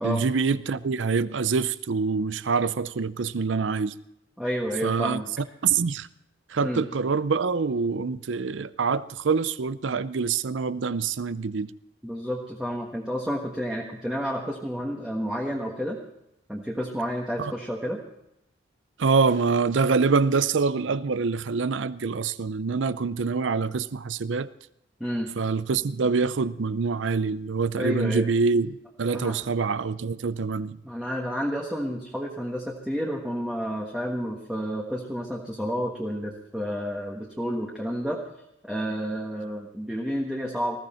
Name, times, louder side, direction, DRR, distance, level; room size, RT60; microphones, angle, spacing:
voice 1, 0.0-3.9 4.8-5.2 5.6-6.1 6.5-11.7 17.4-17.5 19.0-24.5 25.4-30.8, right 5 dB, 70° right, 16 dB, 0.5 m, -25 dB
voice 2, 4.4-5.3 6.6-6.8 12.0-16.0 16.5-18.0 25.0-25.3 27.8-28.2 29.1-29.4 30.8-38.2 38.7-40.8, equal, 5° right, -2 dB, 1.4 m, -30 dB
19.5 x 15.0 x 4.4 m, 0.80 s
head